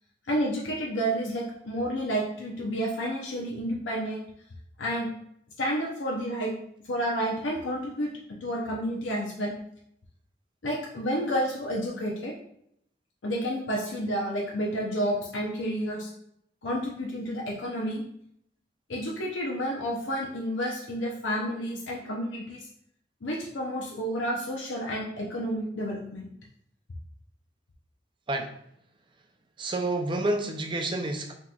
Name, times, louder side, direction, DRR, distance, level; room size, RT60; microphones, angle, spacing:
voice 1, 0.3-4.3 4.8-5.1 5.6-6.5 6.9-8.1 8.4-9.5 10.6-12.3 13.2-16.1 16.6-18.0 18.9-22.6 23.2-26.3, equal, 90° left, -2 dB, 0.7 m, -30 dB
voice 2, 29.6-31.3, right 2 dB, 25° right, 3 dB, 0.5 m, -29 dB
5.7 x 3.0 x 2.3 m, 0.72 s
head